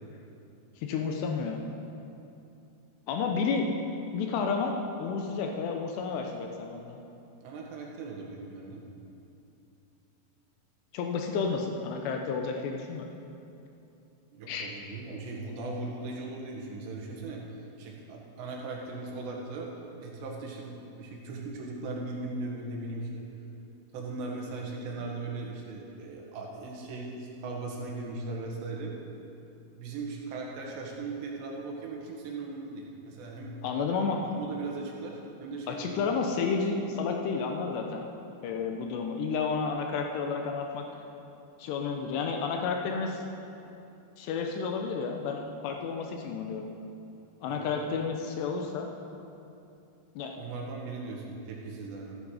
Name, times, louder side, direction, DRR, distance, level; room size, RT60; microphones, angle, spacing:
voice 1, 0.8-1.6 3.1-3.7 4.1-7.0 10.9-13.1 14.5-14.7 33.6-34.2 35.7-38.1 38.4-40.8 41.6-43.2 44.2-46.7 47.4-48.9 50.2-50.4, left 5 dB, 80° left, 2 dB, 2.9 m, -31 dB
voice 2, 7.4-8.8 14.3-17.4 17.8-19.7 20.0-23.2 23.9-28.9 29.7-33.5 34.3-35.9 47.5-47.9 50.4-52.2, right 3 dB, 80° right, -1 dB, 3.8 m, -38 dB
14.5 x 11.0 x 4.9 m, 2.7 s
omnidirectional pair, 4.9 m